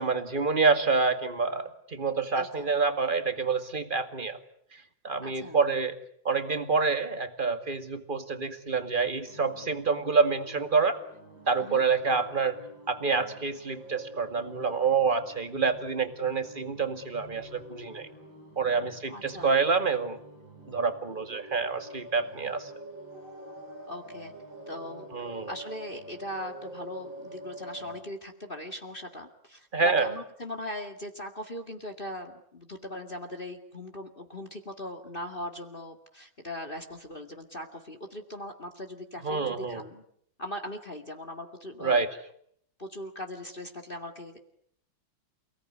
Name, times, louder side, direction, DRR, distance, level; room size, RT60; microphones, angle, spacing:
voice 1, 0.0-4.4 5.0-6.0 6.2-11.0 11.5-12.6 12.9-18.1 18.6-20.2 20.7-22.7 25.1-25.5 29.7-30.1 39.2-39.8 41.8-42.2, right 4 dB, 25° right, 8 dB, 2.1 m, -27 dB
voice 2, 2.4-2.7 5.2-5.6 11.6-11.8 19.1-19.5 23.9-24.3 24.7-25.1 25.5-40.0 40.4-42.0 42.8-44.4, left 1 dB, 25° left, 6 dB, 2.2 m, -39 dB
sound 1, 9.3-28.0, right 1 dB, 80° right, 6.8 m, -47 dB
29.0 x 18.0 x 9.8 m, 0.70 s
omnidirectional pair, 2.1 m